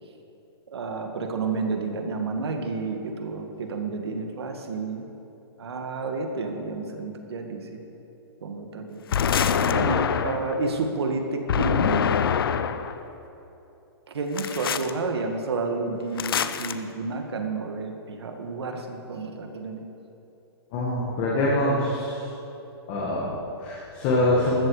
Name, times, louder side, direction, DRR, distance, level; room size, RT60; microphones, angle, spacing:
voice 1, 0.7-5.1 5.6-7.8 8.4-9.0 9.6-12.2 14.1-19.8, right 3 dB, 75° right, 4 dB, 2.0 m, -30 dB
sound 1, 9.1-10.6 11.5-13.0 14.4-14.9 16.2-16.7, left 7 dB, 60° left, 0.7 m, -24 dB
voice 2, 20.7-22.3 22.9-24.7, left 1 dB, 25° left, -4 dB, 1.8 m, -24 dB
14.5 x 13.5 x 5.0 m, 3.0 s
hypercardioid pair, 175°, 14 cm